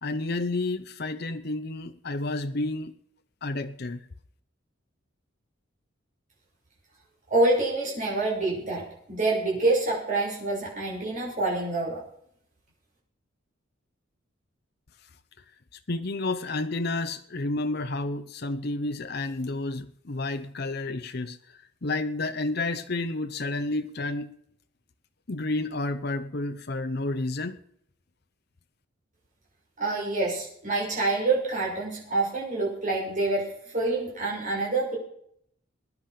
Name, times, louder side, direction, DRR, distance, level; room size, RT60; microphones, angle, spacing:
voice 1, 0.0-2.9 3.4-4.1 15.9-24.3 25.3-27.6, left 2 dB, 50° left, 0.8 m, -30 dB
voice 2, 7.3-12.0 29.8-35.0, right 2 dB, 40° right, 6.6 m, -27 dB
20.5 x 10.5 x 5.3 m
head